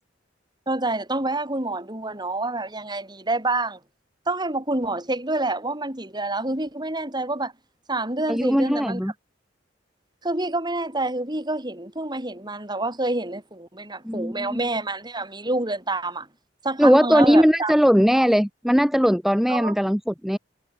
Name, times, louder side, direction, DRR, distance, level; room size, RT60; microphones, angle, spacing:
voice 1, 0.7-3.8 4.3-7.5 7.9-9.0 10.2-16.3 16.6-17.7 18.1-18.3 19.5-19.8, right 2 dB, 25° right, 7.4 m, -27 dB
voice 2, 8.3-9.1 14.0-14.6 16.8-20.4, equal, ahead, 2.0 m, -19 dB
head